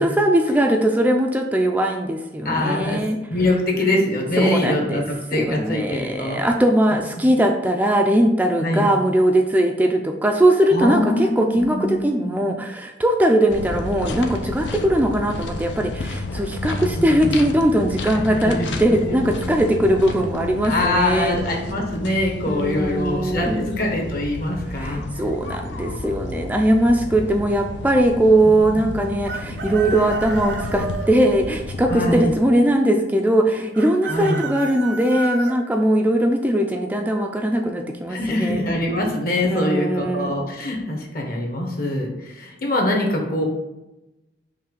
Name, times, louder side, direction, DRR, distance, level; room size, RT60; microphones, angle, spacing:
voice 1, 0.0-3.2 4.4-5.0 5.3-21.4 22.5-23.7 24.8-38.6 39.4-40.3, right 1 dB, 10° right, 3 dB, 0.4 m, -20 dB
voice 2, 2.4-3.0 3.3-6.4 8.6-8.9 10.7-12.3 16.7-17.4 18.3-18.7 19.1-19.2 20.7-25.0 31.9-32.3 34.1-34.4 38.1-43.5, left 1 dB, 55° left, 1 dB, 1.3 m, -23 dB
sound 1, 13.5-32.4, left 2 dB, 85° left, 0.6 m, -31 dB
Chicken rooster, 29.2-31.1 33.7-35.5, right 3 dB, 70° right, 0.7 m, -31 dB
5.6 x 3.2 x 5.3 m, 0.97 s
head